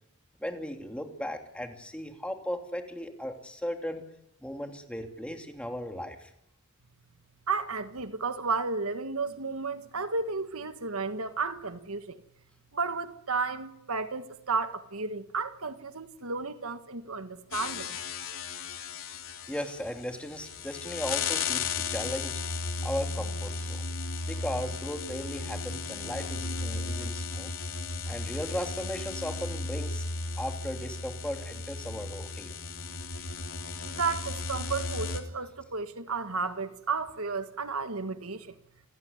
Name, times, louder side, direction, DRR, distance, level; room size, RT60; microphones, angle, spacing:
voice 1, 0.4-4.0 4.4-6.3 19.5-22.4 22.8-23.9 24.3-27.5 28.1-30.0 30.4-32.6, equal, 5° left, 2.8 m, -36 dB
voice 2, 7.5-12.2 12.7-18.0 33.8-38.6, right 4 dB, 75° right, 1.6 m, -33 dB
sound 1, 17.5-35.2, left 4 dB, 65° left, 3.3 m, -35 dB
29.0 x 16.0 x 9.6 m
head